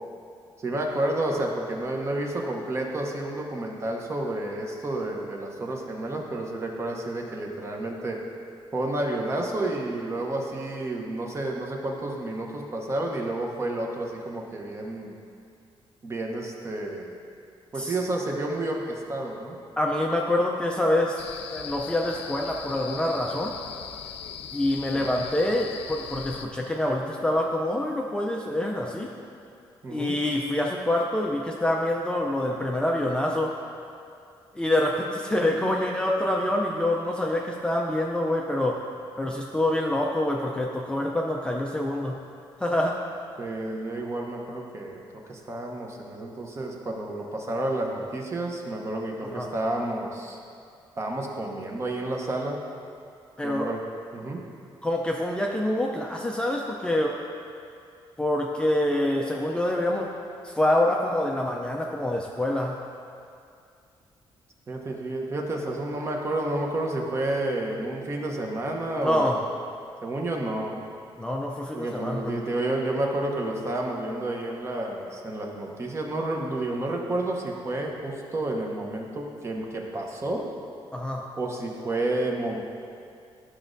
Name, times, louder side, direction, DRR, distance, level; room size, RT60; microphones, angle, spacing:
voice 1, 0.6-8.2 8.7-15.2 16.0-17.1 17.7-19.6 24.9-25.2 29.8-30.2 43.4-50.4 51.0-52.6 53.4-53.8 54.1-54.4 64.7-69.4 70.0-70.7 71.7-80.5 81.4-82.6, right 2 dB, 30° right, 0 dB, 0.8 m, -30 dB
voice 2, 19.8-21.2 21.5-23.5 24.5-29.1 29.9-33.5 34.5-38.8 39.2-42.2 42.6-43.0 49.3-49.5 53.4-53.7 54.8-57.2 58.2-60.1 60.4-62.8 69.0-69.4 71.2-72.4 80.9-81.2, left 1 dB, 10° left, -1 dB, 0.4 m, -26 dB
sound 1, 21.2-26.5, left 8 dB, 90° left, 0.4 m, -39 dB
11.5 x 6.1 x 2.6 m, 2.4 s
cardioid pair, 145°, 10 cm